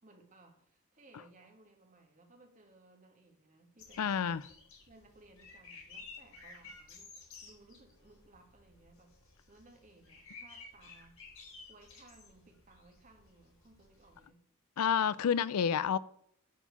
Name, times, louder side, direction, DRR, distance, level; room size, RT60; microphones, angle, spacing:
voice 1, 0.0-4.4 4.9-7.2 7.4-11.2 11.7-14.5, right 2 dB, 35° right, 1.8 m, -61 dB
sound 1, 3.8-14.3, left 4 dB, 65° left, 3.8 m, -54 dB
voice 2, 4.0-4.4 14.8-16.0, left 7 dB, 80° left, 0.4 m, -29 dB
10.0 x 4.6 x 7.0 m
head